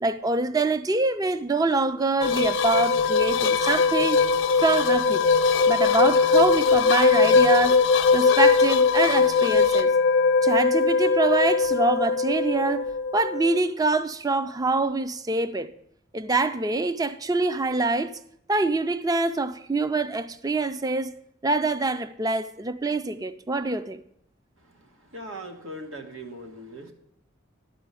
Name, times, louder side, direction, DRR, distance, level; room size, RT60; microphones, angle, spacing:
voice 1, 0.0-4.2 4.6-5.3 5.7-7.9 8.1-9.9 10.4-15.7 16.1-18.2 18.5-21.1 21.4-24.0, right 3 dB, 20° right, 0.4 m, -25 dB
sound 1, 2.2-13.6, left 5 dB, 75° left, 0.6 m, -20 dB
voice 2, 25.1-26.9, right 1 dB, 90° right, 1.7 m, -39 dB
12.0 x 5.1 x 8.3 m
head